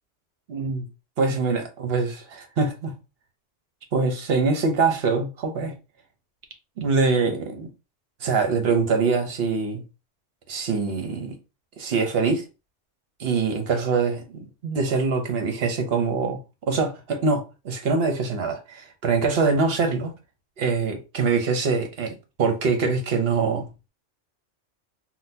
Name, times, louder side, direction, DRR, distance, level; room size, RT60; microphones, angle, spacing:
voice 1, 0.5-0.9 1.2-3.0 3.9-5.8 6.8-7.7 8.2-9.8 10.5-11.4 11.8-12.5 13.2-16.4 16.7-20.1 20.6-23.7, right 4 dB, 60° right, 1.0 m, -24 dB
3.8 x 2.3 x 2.7 m
omnidirectional pair, 1.2 m